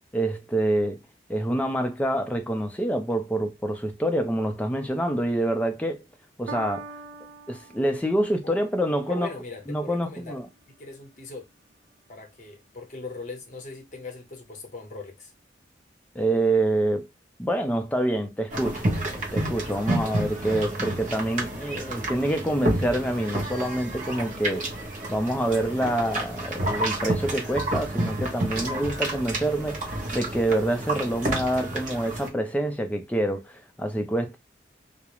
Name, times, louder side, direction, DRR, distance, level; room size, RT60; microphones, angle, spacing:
voice 1, 0.1-1.0 1.3-6.0 6.4-6.9 7.5-9.3 9.7-10.5 16.1-17.1 17.4-18.8 19.1-24.7 25.1-34.4, right 1 dB, 10° left, 0.4 m, -26 dB
Piano, 6.5-13.1 13.9-14.0, right 4 dB, 75° right, 0.4 m, -46 dB
voice 2, 8.4-10.4 10.8-11.5 12.1-15.3, left 3 dB, 40° left, 0.7 m, -40 dB
sound 1, 18.5-32.3, right 1 dB, 40° right, 0.7 m, -30 dB
2.4 x 2.0 x 2.9 m
head